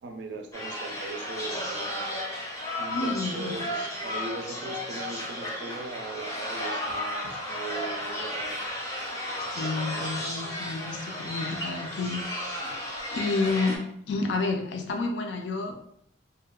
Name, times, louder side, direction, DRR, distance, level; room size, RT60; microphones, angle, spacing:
voice 1, 0.0-2.1 2.8-8.7, right 3 dB, 70° right, 4 dB, 0.3 m, -39 dB
sound 1, 0.5-13.8, left 1 dB, 15° left, 0.5 m, -34 dB
voice 2, 2.9-3.5 7.2-7.3 9.5-13.8 14.1-15.7, left 3 dB, 75° left, 4 dB, 0.4 m, -30 dB
2.7 x 2.1 x 2.2 m, 0.71 s
head